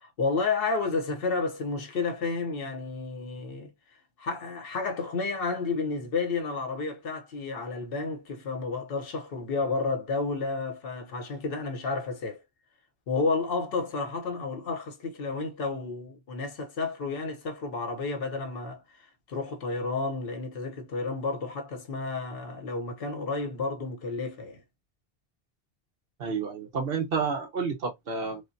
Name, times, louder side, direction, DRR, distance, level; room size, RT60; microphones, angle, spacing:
voice 1, 0.0-3.7 4.2-12.4 13.1-24.6, left 3 dB, 65° left, 1.0 m, -31 dB
voice 2, 26.2-28.4, right 5 dB, 65° right, 1.1 m, -30 dB
3.4 x 2.1 x 2.5 m
omnidirectional pair, 1.1 m